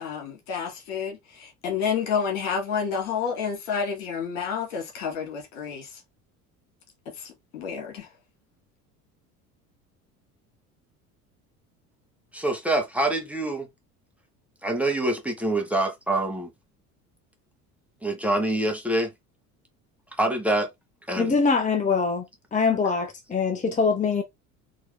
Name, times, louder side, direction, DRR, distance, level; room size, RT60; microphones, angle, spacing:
voice 1, 0.0-5.9 7.5-8.1, left 6 dB, 65° left, 2.3 m, -29 dB
voice 2, 12.3-13.7 14.6-16.5 18.0-19.1 20.2-20.7 21.1-21.4, right 1 dB, 5° right, 1.4 m, -25 dB
voice 3, 21.2-22.2 22.5-24.2, left 4 dB, 15° left, 1.0 m, -23 dB
4.6 x 3.1 x 3.3 m
figure-of-eight pair, 65°, 44 cm